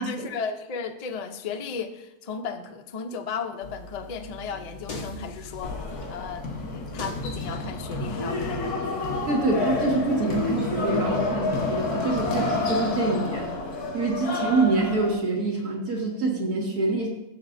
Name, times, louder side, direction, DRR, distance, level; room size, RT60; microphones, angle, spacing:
voice 1, 0.0-9.1 14.3-14.6, left 5 dB, 60° left, 6 dB, 0.4 m, -35 dB
sound 1, 3.6-8.7, left 2 dB, 35° left, 1.0 m, -41 dB
sound 2, 5.6-15.1, left 3 dB, 85° left, 1.8 m, -29 dB
voice 2, 9.3-13.5 13.9-17.1, right 3 dB, 80° right, -2 dB, 2.3 m, -25 dB
14.0 x 7.5 x 2.6 m, 0.91 s
omnidirectional pair, 1.6 m